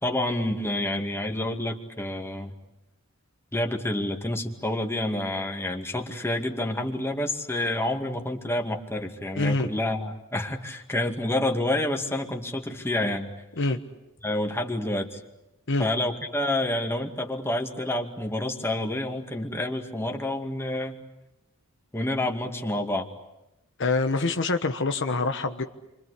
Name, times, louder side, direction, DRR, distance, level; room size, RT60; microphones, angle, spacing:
voice 1, 0.0-2.5 3.5-13.3 14.2-15.2 15.8-21.0 21.9-23.1, left 1 dB, 10° left, 3 dB, 2.3 m, -28 dB
voice 2, 9.4-9.7 13.6-13.8 15.7-15.9 23.8-25.6, left 3 dB, 60° left, 6 dB, 1.3 m, -25 dB
29.0 x 25.0 x 8.3 m, 0.93 s
head